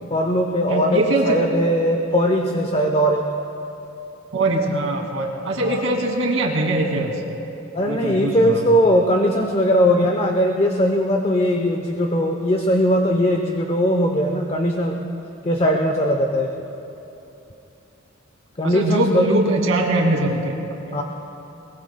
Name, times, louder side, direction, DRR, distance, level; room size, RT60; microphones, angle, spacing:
voice 1, 0.1-3.3 5.6-5.8 7.7-15.0 15.4-16.5 18.6-19.3 20.9-21.0, equal, 30° left, 2 dB, 0.8 m, -19 dB
voice 2, 0.7-1.4 4.3-7.2 7.9-8.6 18.6-20.5 20.9-21.0, right 1 dB, 80° right, 0 dB, 2.4 m, -21 dB
22.0 x 22.0 x 2.3 m, 2.9 s
head